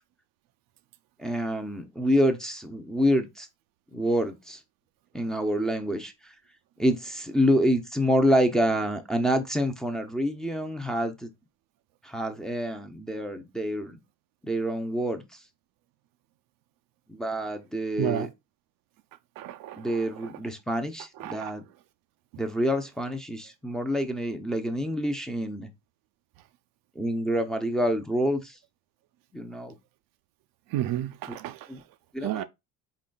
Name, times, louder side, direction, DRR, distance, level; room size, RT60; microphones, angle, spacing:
voice 1, 1.2-3.5 3.9-4.6 5.1-6.3 6.8-11.3 12.0-14.0 14.4-15.4 17.1-18.3 19.8-21.6 22.4-25.7 27.0-28.6 29.3-29.7 31.7-31.8 32.1-32.4, equal, ahead, 0.6 m, -27 dB
voice 2, 19.4-19.8 21.2-21.5 30.7-31.6 32.2-32.4, right 12 dB, 65° right, 0.5 m, -30 dB
4.2 x 3.9 x 2.2 m
cardioid pair, 110°, 38 cm